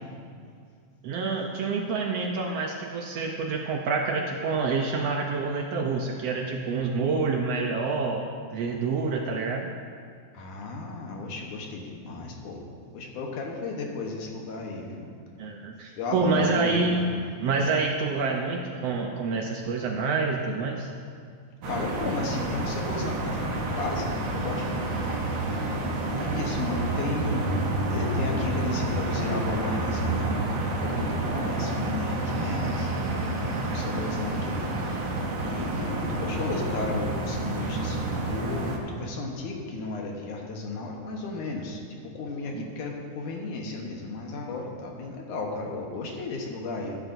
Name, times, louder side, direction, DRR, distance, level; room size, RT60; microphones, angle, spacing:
voice 1, 1.0-8.2 8.5-9.7 15.4-17.0 17.4-20.9 42.5-42.7, right 4 dB, 80° right, 1 dB, 1.4 m, -27 dB
voice 2, 10.3-12.6 12.9-15.1 16.0-17.2 21.7-25.3 25.6-25.8 26.1-27.5 27.9-32.9 33.7-34.6 35.4-47.0, left 3 dB, 75° left, 0 dB, 2.5 m, -34 dB
sound 1, 21.6-38.8, right 2 dB, 60° right, 1.3 m, -29 dB
14.5 x 12.0 x 2.6 m, 2.2 s
omnidirectional pair, 3.7 m